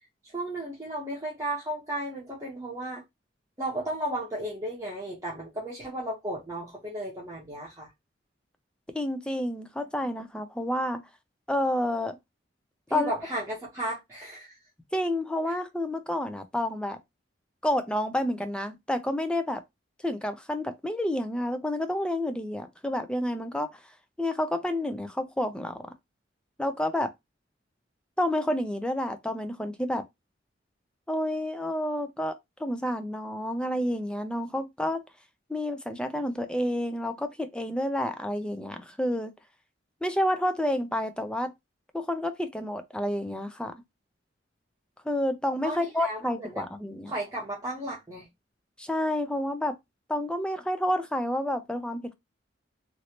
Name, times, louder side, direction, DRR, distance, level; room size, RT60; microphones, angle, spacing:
voice 1, 0.3-3.0 3.6-7.9 12.9-14.5 45.6-46.6 47.1-48.3, right 1 dB, 15° right, 1.0 m, -34 dB
voice 2, 8.9-11.0 11.5-12.2 12.9-13.2 14.9-17.0 17.6-19.6 20.0-23.7 24.2-25.8 26.6-27.1 28.2-30.0 31.1-35.0 35.5-39.3 40.0-41.5 41.9-43.7 45.0-47.1 48.8-49.7 50.1-52.1, left 1 dB, 5° left, 0.4 m, -29 dB
3.1 x 2.7 x 2.8 m
head